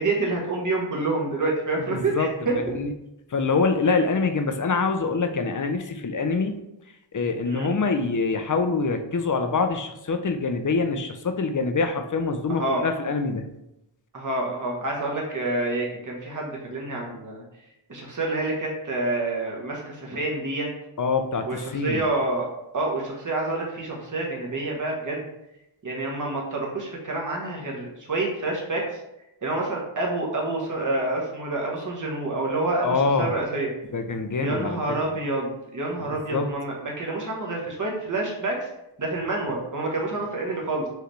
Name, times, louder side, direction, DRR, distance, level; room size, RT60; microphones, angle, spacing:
voice 1, 0.0-2.6 4.0-4.1 7.4-7.7 12.5-12.8 14.1-17.4 17.9-20.7 21.5-22.5 22.7-25.3 25.8-29.0 29.4-33.7 34.4-38.7 39.0-40.9, right 2 dB, 40° right, -2 dB, 1.1 m, -28 dB
voice 2, 1.9-2.3 2.7-2.9 3.3-6.6 7.1-13.4 21.0-22.0 32.8-33.3 33.9-35.2 36.3-36.5, left 4 dB, 40° left, 7 dB, 0.5 m, -25 dB
4.8 x 3.3 x 3.2 m, 0.87 s
wide cardioid pair, 85°, 48 cm